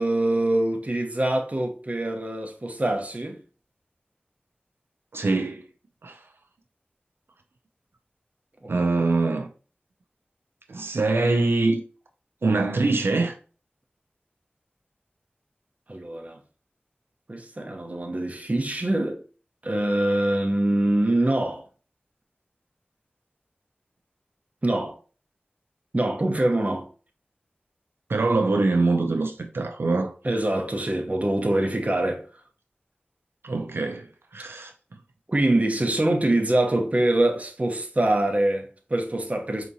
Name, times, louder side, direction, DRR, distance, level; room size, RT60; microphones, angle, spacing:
voice 1, 0.0-3.4 8.8-9.1 15.9-16.4 17.3-19.2 19.6-21.6 24.6-25.0 25.9-26.9 30.2-32.3 35.3-39.7, right 1 dB, 40° right, 0.8 m, -24 dB
voice 2, 5.1-5.6 6.0-6.2 8.7-9.5 10.7-11.8 12.4-13.3 28.1-30.1 33.4-34.1 34.3-34.7, right 3 dB, 85° right, 0.4 m, -23 dB
4.7 x 2.8 x 2.7 m
wide cardioid pair, 55°, 4 cm